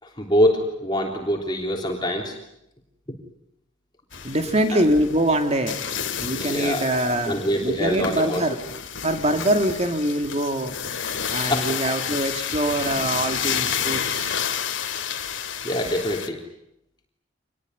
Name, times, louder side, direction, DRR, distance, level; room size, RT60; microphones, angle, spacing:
voice 1, 0.0-2.3 4.7-4.8 6.4-7.0 7.3-8.4 11.5-11.7 15.6-16.4, equal, 20° left, 1 dB, 3.3 m, -24 dB
sound 1, 4.1-16.3, left 8 dB, 65° left, 2.4 m, -30 dB
voice 2, 4.1-8.6 9.0-10.7 11.3-14.4, right 1 dB, 30° right, 6 dB, 2.6 m, -24 dB
26.5 x 20.5 x 9.8 m, 0.82 s
head